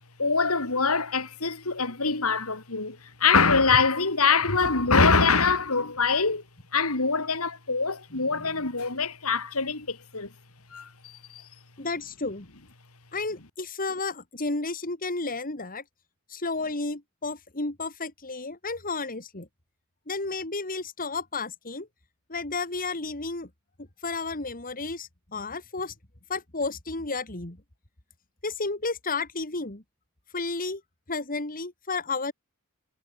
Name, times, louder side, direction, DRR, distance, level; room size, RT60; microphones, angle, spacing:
voice 1, 0.2-6.4 6.7-10.3 10.7-11.5, left 4 dB, 75° left, 3.5 m, -24 dB
voice 2, 8.1-8.7 11.8-12.5 13.1-15.8 16.3-19.5 20.1-21.9 22.3-23.5 24.0-25.9 26.3-27.6 28.4-29.8 30.3-30.8 31.1-32.3, left 3 dB, 40° left, 3.0 m, -32 dB
head